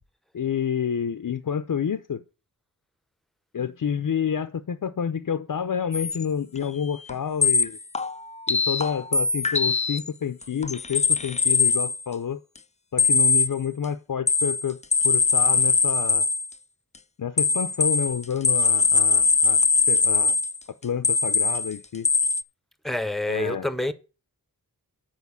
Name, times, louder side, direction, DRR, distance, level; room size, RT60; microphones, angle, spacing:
voice 1, 0.3-2.2 3.5-7.8 8.5-12.4 12.9-14.8 15.0-16.3 17.2-20.4 20.8-22.1 23.3-23.7, left 8 dB, 60° left, 0.7 m, -29 dB
sound 1, 5.9-6.2 7.1-7.2 7.4-10.1 10.4-12.0 13.0-13.5 14.3-16.5 17.4-20.6 21.0-21.7 22.0-22.4, left 4 dB, 20° left, 0.4 m, -21 dB
voice 2, 22.8-23.9, left 1 dB, ahead, 0.9 m, -27 dB
8.3 x 5.1 x 7.1 m
wide cardioid pair, 65°, 37 cm